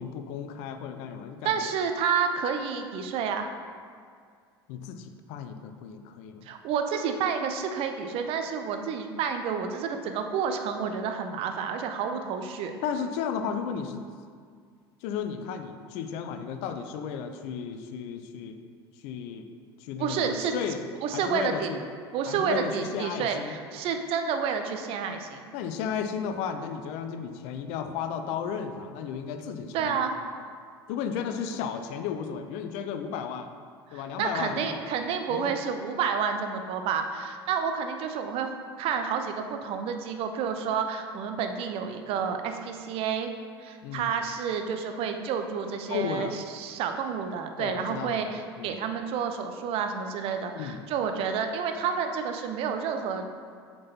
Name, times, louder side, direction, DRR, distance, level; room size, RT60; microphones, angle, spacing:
voice 1, 0.0-1.7 4.7-6.5 12.8-14.0 15.0-18.6 19.0-19.5 19.8-20.8 21.1-21.8 22.3-23.6 25.5-30.0 30.9-33.5 33.9-34.8 35.3-35.5 43.8-44.1 45.9-46.3 47.6-48.8 50.5-50.8, left 7 dB, 50° left, 8 dB, 0.5 m, -34 dB
voice 2, 1.4-3.5 6.4-12.7 20.0-20.5 21.0-21.7 22.1-25.4 29.7-30.1 33.9-43.3 43.6-53.3, right 6 dB, 45° right, 6 dB, 0.6 m, -30 dB
7.3 x 4.6 x 4.2 m, 2.1 s
figure-of-eight pair, 70°, 14 cm